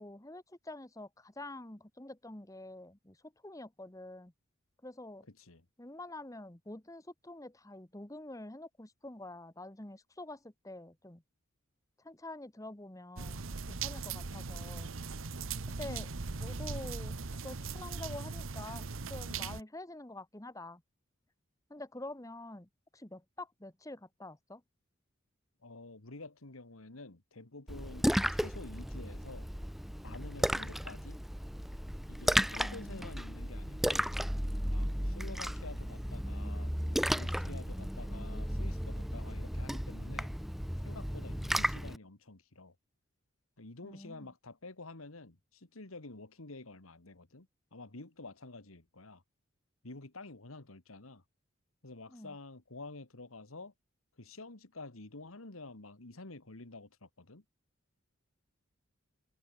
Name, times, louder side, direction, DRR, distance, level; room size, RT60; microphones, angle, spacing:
voice 1, 0.0-4.3 4.8-5.3 5.8-11.2 12.0-13.4 13.7-14.9 15.7-16.1 16.4-17.1 17.4-20.8 21.7-24.6 32.6-33.0 43.8-44.3 52.1-52.4, left 2 dB, 15° left, 1.3 m, -47 dB
voice 2, 5.3-5.7 15.8-16.1 25.6-29.5 30.0-31.2 32.1-34.1 34.7-40.3 40.8-42.8 43.6-49.2 49.8-51.2 51.8-53.7 54.2-57.4, left 2 dB, 90° left, 2.1 m, -49 dB
sound 1, 13.2-19.6, right 4 dB, 75° right, 1.1 m, -39 dB
Splash splatter, 27.7-42.0, equal, ahead, 0.7 m, -34 dB
head